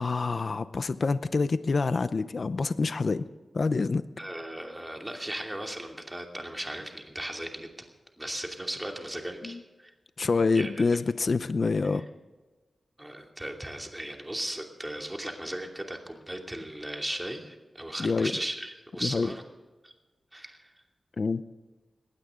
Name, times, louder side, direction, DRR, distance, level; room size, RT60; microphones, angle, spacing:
voice 1, 0.0-3.2 3.5-4.0 9.4-9.6 10.2-12.1 18.0-18.3 19.0-19.3 21.2-21.4, left 4 dB, 50° left, 13 dB, 0.7 m, -26 dB
voice 2, 4.2-7.7 8.2-9.9 10.5-10.9 13.0-19.4 19.8-19.9 20.3-20.7, right 1 dB, 15° right, 2 dB, 2.7 m, -37 dB
20.0 x 16.5 x 3.8 m, 1.2 s
wide cardioid pair, 105°, 0 cm